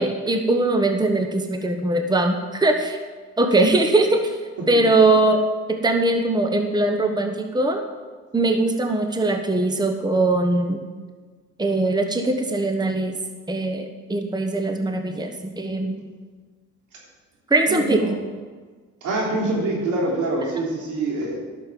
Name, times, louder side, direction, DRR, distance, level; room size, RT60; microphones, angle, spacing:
voice 1, 0.0-3.0 3.4-4.3 4.7-5.4 5.7-7.8 8.3-10.8 11.6-13.1 13.5-16.0 17.5-18.1, right 2 dB, 15° right, 5 dB, 1.1 m, -21 dB
voice 2, 17.7-18.2 19.0-21.4, right 2 dB, 85° right, -3 dB, 3.6 m, -25 dB
12.0 x 6.7 x 7.5 m, 1.4 s
cardioid pair, 90°, 30 cm